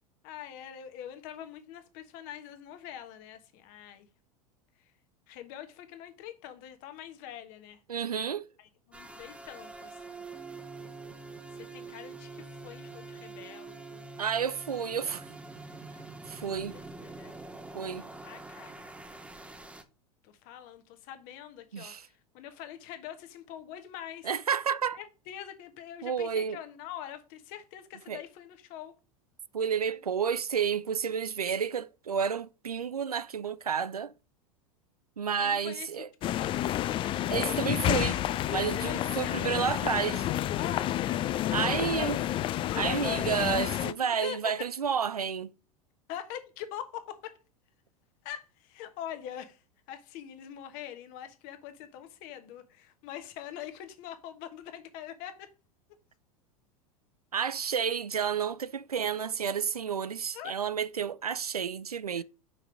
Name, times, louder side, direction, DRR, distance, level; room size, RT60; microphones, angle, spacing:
voice 1, 0.2-4.1 4.8-4.9 5.3-7.8 8.6-10.2 11.6-14.0 17.0-17.3 17.8-18.8 20.2-24.3 24.9-29.0 29.9-30.0 35.4-35.9 36.2-36.8 38.8-39.5 40.5-41.3 41.7-42.4 42.9-44.5 46.1-47.4 48.2-49.6 49.9-55.5 60.3-60.6 62.2-62.3, left 10 dB, 50° left, 1.3 m, -44 dB
voice 2, 7.9-8.5 14.2-15.2 16.3-16.8 17.7-18.1 21.7-22.0 24.2-25.0 26.0-26.6 28.1-28.2 29.5-34.1 35.2-36.1 37.3-38.2 38.5-40.3 41.5-42.2 42.7-45.5 57.3-62.2, right 7 dB, 90° right, 0.4 m, -30 dB
sound 1, 8.9-19.8, right 3 dB, 5° right, 1.0 m, -45 dB
sound 2, 36.2-43.9, left 13 dB, 30° left, 0.4 m, -30 dB
5.9 x 4.4 x 4.8 m
figure-of-eight pair, 85°, 19 cm